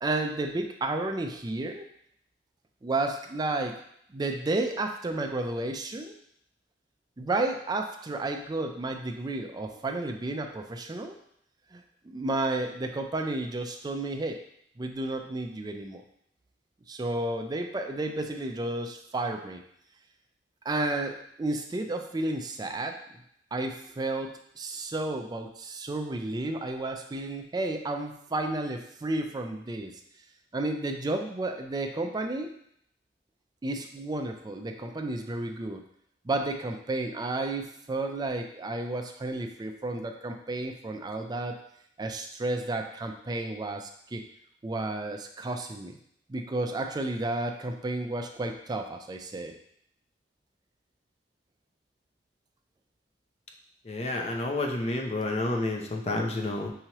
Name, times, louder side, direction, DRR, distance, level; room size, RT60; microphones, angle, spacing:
voice 1, 0.0-1.8 2.8-3.8 4.1-6.1 7.2-11.1 11.7-14.4 14.8-16.0 16.9-19.6 20.7-23.0 23.5-30.0 30.5-32.5 33.6-35.8 36.2-41.6 42.0-44.2 44.6-46.0 46.3-49.5, right 2 dB, 25° right, 5 dB, 0.4 m, -32 dB
voice 2, 53.9-56.7, left 2 dB, 35° left, 2 dB, 0.6 m, -29 dB
5.6 x 2.9 x 2.9 m, 0.70 s
head